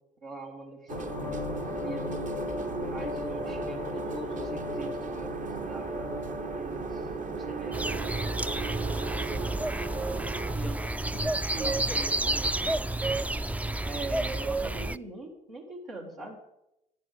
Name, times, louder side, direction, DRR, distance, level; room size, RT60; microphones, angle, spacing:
voice 1, 0.2-2.2 2.8-5.3 5.6-6.3 6.6-8.3 8.9-9.6 10.5-13.3 13.8-16.4, right 2 dB, 80° right, -5 dB, 2.1 m, -42 dB
sound 1, 0.9-14.6, left 7 dB, 85° left, 0.4 m, -41 dB
sound 2, 0.9-10.6, right 5 dB, 35° right, 0.9 m, -36 dB
sound 3, 7.7-15.0, right 2 dB, 5° right, 0.3 m, -30 dB
10.5 x 9.1 x 6.8 m, 0.84 s
figure-of-eight pair, 40°, 21 cm